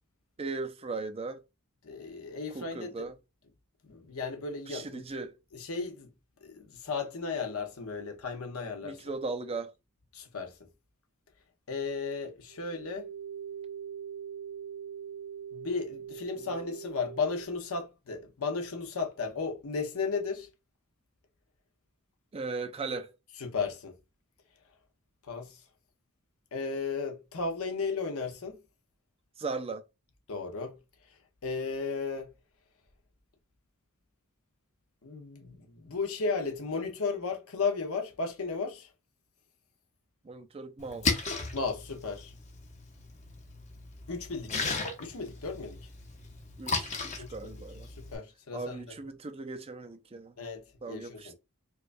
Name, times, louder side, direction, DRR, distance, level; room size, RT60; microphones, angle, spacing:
voice 1, 0.4-1.4 2.5-3.1 4.7-5.4 8.8-9.7 22.3-23.1 29.4-29.8 40.2-41.1 46.6-47.9 48.5-50.4 50.8-51.3, right 3 dB, 25° right, 0.4 m, -37 dB
voice 2, 1.8-3.1 3.8-5.0 5.5-6.1 6.4-9.0 10.1-10.6 11.7-13.1 15.5-20.5 23.4-24.0 25.2-25.6 26.5-28.6 30.3-30.8 31.1-31.2 31.4-32.4 35.0-38.9 41.5-42.3 44.1-44.7 45.0-45.8 47.2-47.5 48.0-48.9 50.4-51.3, left 4 dB, 65° left, 0.8 m, -35 dB
sound 1, 12.5-17.5, right 8 dB, 90° right, 0.3 m, -42 dB
Splash splatter, 40.8-48.2, left 4 dB, 30° left, 0.8 m, -36 dB
4.6 x 2.3 x 2.5 m
head